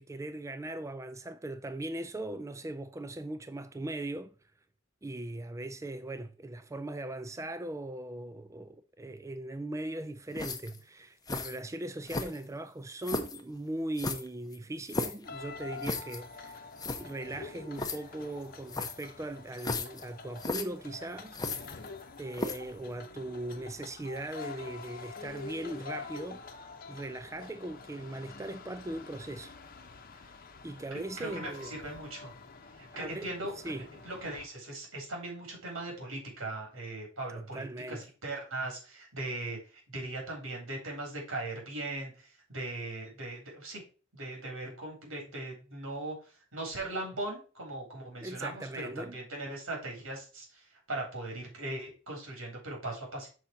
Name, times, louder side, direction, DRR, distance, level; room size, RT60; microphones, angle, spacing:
voice 1, 0.0-4.3 5.0-16.6 16.9-21.7 22.2-26.4 26.9-29.5 30.1-30.3 30.6-31.7 32.9-33.3 33.6-33.9 37.3-38.0 48.2-49.1, right 1 dB, 15° right, 0.4 m, -39 dB
sound 1, 10.3-10.8 11.3-11.6 12.1-12.6 13.0-13.4 14.0-15.2 15.8-16.2 16.5-16.6 16.8-17.0 17.8-18.0 18.7-19.1 19.6-20.0 20.4-20.6 21.3-22.0 22.3-22.7, left 3 dB, 20° left, 0.8 m, -35 dB
sound 2, 15.2-34.5, left 4 dB, 45° left, 0.9 m, -47 dB
voice 2, 30.9-32.3 32.8-33.5 34.0-43.8 44.1-46.2 46.5-53.3, right 2 dB, 85° right, 3.6 m, -39 dB
6.4 x 4.3 x 5.7 m
head